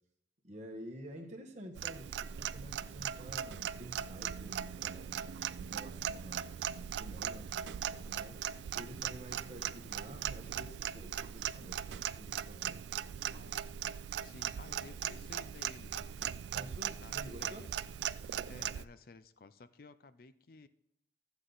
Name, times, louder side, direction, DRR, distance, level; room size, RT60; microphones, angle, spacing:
voice 1, 0.4-5.2 5.6-6.6 6.9-8.4 8.7-12.8 16.5-17.6 18.4-18.7, equal, 40° right, 2 dB, 1.1 m, -50 dB
Clock, 1.8-18.8, right 9 dB, 80° right, 0.3 m, -39 dB
voice 2, 13.3-13.6 14.2-15.9 17.0-17.9 18.5-20.7, left 3 dB, 55° left, 13 dB, 0.5 m, -54 dB
13.5 x 8.1 x 3.9 m, 0.76 s
head